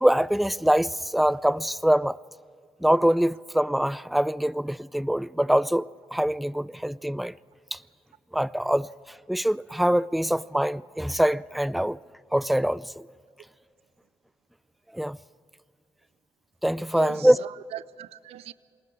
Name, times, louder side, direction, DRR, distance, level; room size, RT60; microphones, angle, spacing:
voice 1, 0.0-2.2 2.8-7.3 7.7-7.8 8.3-8.9 9.3-12.0 12.3-13.1 14.9-15.2 16.6-17.4, equal, ahead, 0.5 m, -24 dB
voice 2, 16.9-18.5, right 13 dB, 90° right, 0.5 m, -39 dB
28.0 x 20.0 x 4.9 m
supercardioid pair, 50°, 10 cm